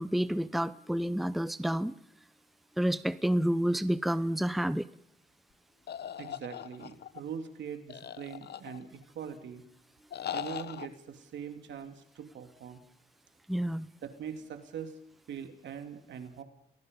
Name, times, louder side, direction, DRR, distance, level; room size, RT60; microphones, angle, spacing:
voice 1, 0.0-1.9 2.8-4.9 13.5-13.9, equal, ahead, 15 dB, 0.8 m, -29 dB
sound 1, 5.9-7.2 7.9-9.0 10.1-10.9, left 9 dB, 60° left, 1.0 m, -40 dB
voice 2, 6.2-9.6 10.3-12.8 14.0-15.0 15.3-16.4, right 7 dB, 75° right, 6 dB, 2.9 m, -42 dB
29.5 x 19.5 x 5.5 m, 0.72 s
cardioid pair, 75°, 19 cm